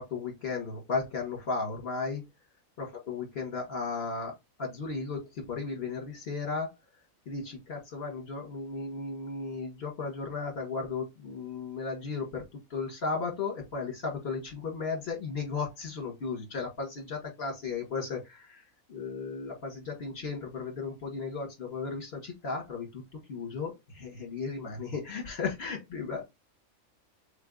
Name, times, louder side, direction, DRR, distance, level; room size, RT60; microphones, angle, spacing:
voice 1, 0.0-2.2 2.8-4.3 4.6-6.7 7.3-12.4 12.7-18.6 18.9-23.0 23.3-26.2, left 4 dB, 45° left, 2 dB, 1.9 m, -35 dB
3.7 x 3.3 x 3.8 m, 0.21 s
omnidirectional pair, 1.4 m